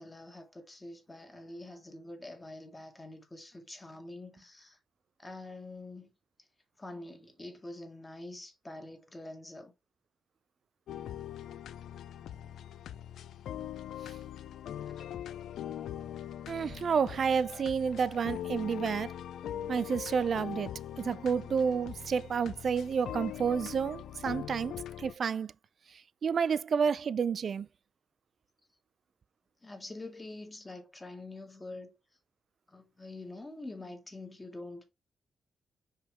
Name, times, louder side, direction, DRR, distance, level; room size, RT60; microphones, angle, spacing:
voice 1, 0.0-4.8 5.2-6.1 6.8-9.7 29.6-31.9 32.7-34.8, left 2 dB, 20° left, 2.0 m, -45 dB
sound 1, 10.9-25.1, left 10 dB, 80° left, 0.4 m, -42 dB
voice 2, 16.5-19.1 19.7-25.5 26.2-27.7, right 6 dB, 60° right, 0.4 m, -30 dB
5.7 x 5.0 x 3.5 m
cardioid pair, 65°, 0 cm